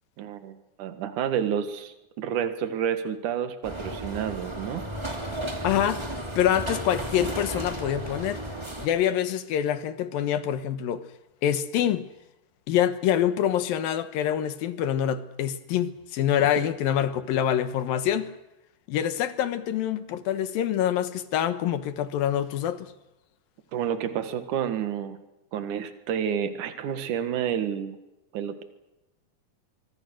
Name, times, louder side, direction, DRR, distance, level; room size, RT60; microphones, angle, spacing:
voice 1, 0.2-4.8 23.7-25.2 25.5-28.0 28.3-28.6, right 8 dB, 60° right, 2.9 m, -29 dB
sound 1, 3.6-8.9, right 1 dB, 10° right, 2.0 m, -34 dB
voice 2, 5.6-6.0 6.4-8.4 8.8-11.0 11.4-12.1 12.7-18.3 18.9-22.9, left 10 dB, 70° left, 2.8 m, -25 dB
25.0 x 24.5 x 6.4 m
omnidirectional pair, 4.4 m